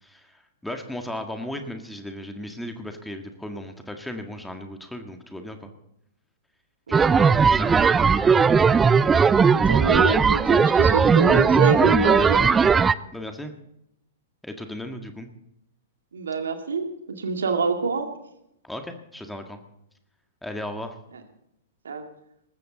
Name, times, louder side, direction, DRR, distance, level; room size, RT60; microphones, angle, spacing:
voice 1, 0.0-5.7 6.9-8.0 13.1-13.5 14.4-15.3 18.6-19.6 20.4-21.0, left 1 dB, 5° left, 5 dB, 1.8 m, -36 dB
sound 1, 6.9-12.9, right 5 dB, 15° right, 0.5 m, -18 dB
voice 2, 9.3-12.5 16.1-18.1 21.8-22.0, right 4 dB, 70° right, 5 dB, 2.2 m, -26 dB
19.5 x 14.5 x 4.1 m, 0.78 s
figure-of-eight pair, 105°, 0 cm